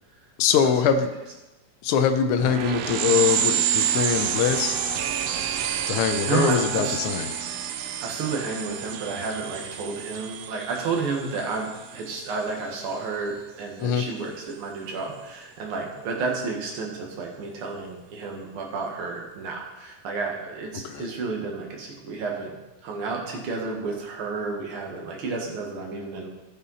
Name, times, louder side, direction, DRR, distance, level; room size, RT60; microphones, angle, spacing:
voice 1, 0.4-1.1 1.8-4.7 5.9-7.3 13.8-14.0 20.8-21.0, left 7 dB, 85° left, 6 dB, 1.2 m, -23 dB
sound 1, 2.4-12.5, right 9 dB, 85° right, 1.4 m, -29 dB
voice 2, 6.3-7.0 8.0-22.6 22.8-26.3, right 4 dB, 50° right, 0 dB, 2.2 m, -31 dB
15.5 x 5.5 x 4.1 m, 1.1 s
omnidirectional pair, 3.6 m